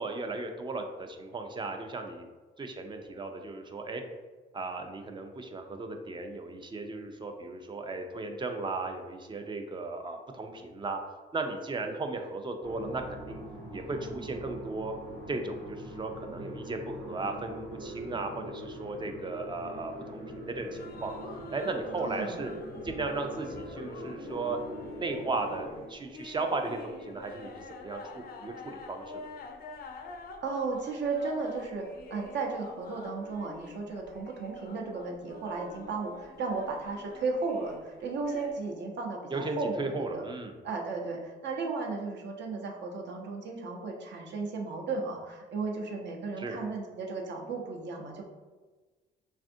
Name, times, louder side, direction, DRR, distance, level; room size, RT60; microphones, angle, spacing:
voice 1, 0.0-2.2 2.6-4.0 4.5-11.0 11.3-13.4 13.7-14.9 15.3-21.1 21.5-22.5 22.8-24.6 24.9-29.3 39.3-40.6 46.4-46.6, right 3 dB, 25° right, 5 dB, 0.3 m, -36 dB
sound 1, 12.6-25.8, right 1 dB, 90° right, 1.0 m, -43 dB
sound 2, 20.6-38.6, left 3 dB, 50° left, 0.4 m, -47 dB
voice 2, 22.0-22.4 30.4-40.2 40.6-48.2, right 4 dB, 60° right, 0 dB, 0.6 m, -35 dB
3.4 x 2.4 x 2.5 m, 1.3 s
cardioid pair, 90°, 20 cm